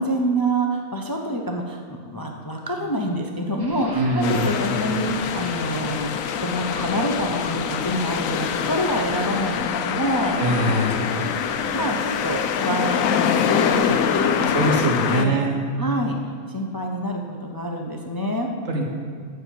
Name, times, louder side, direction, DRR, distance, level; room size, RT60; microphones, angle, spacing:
voice 1, 0.0-10.4 11.5-15.4 15.8-16.2 16.5-18.5, equal, 25° left, 2 dB, 0.5 m, -27 dB
sound 1, 3.6-14.8, right 1 dB, 20° right, 0.9 m, -40 dB
voice 2, 3.9-4.5 10.4-11.0 14.2-15.6 18.7-18.8, right 1 dB, 70° right, 0 dB, 1.8 m, -23 dB
sound 2, 4.2-15.3, left 8 dB, 80° left, 1.0 m, -25 dB
8.1 x 6.6 x 7.4 m, 2.1 s
omnidirectional pair, 1.4 m